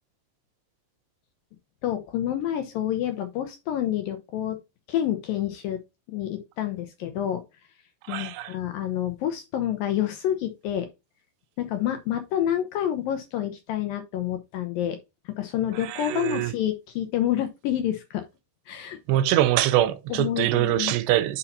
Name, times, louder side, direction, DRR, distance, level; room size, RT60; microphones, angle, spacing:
voice 1, 1.8-4.6 4.9-5.8 6.1-7.4 8.1-10.9 11.6-15.0 15.3-18.3 18.7-19.0 20.2-20.9, left 11 dB, 80° left, 2.1 m, -28 dB
voice 2, 8.0-8.6 15.7-16.5 19.1-21.4, right 13 dB, 85° right, 2.9 m, -24 dB
9.9 x 5.6 x 2.7 m
omnidirectional pair, 4.9 m